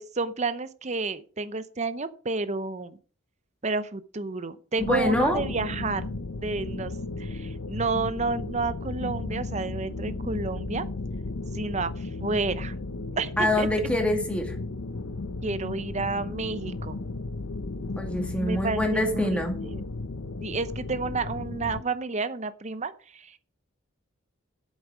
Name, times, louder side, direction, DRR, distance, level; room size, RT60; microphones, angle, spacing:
voice 1, 0.0-3.0 3.6-6.1 6.4-6.9 7.2-10.9 11.5-12.7 13.2-13.9 15.4-17.0 18.4-19.4 19.7-19.8 20.4-23.4, right 3 dB, 35° right, 13 dB, 0.7 m, -30 dB
sound 1, 4.8-21.8, left 2 dB, 80° left, 0.8 m, -34 dB
voice 2, 4.8-5.4 13.4-14.6 18.0-19.5, left 1 dB, 5° left, 3 dB, 2.2 m, -25 dB
8.5 x 8.2 x 6.1 m, 0.40 s
head